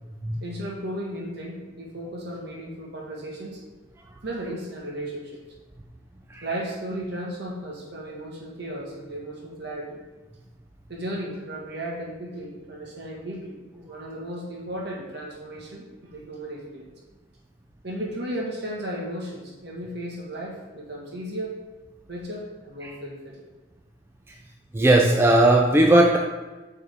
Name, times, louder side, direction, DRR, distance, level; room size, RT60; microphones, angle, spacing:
voice 1, 0.4-3.6 4.2-5.4 6.4-10.0 10.9-16.9 17.8-21.5 22.1-23.4, right 1 dB, 60° right, -2 dB, 1.4 m, -35 dB
voice 2, 24.7-26.2, right 1 dB, 10° right, 1 dB, 0.3 m, -18 dB
7.9 x 3.6 x 3.5 m, 1.2 s
head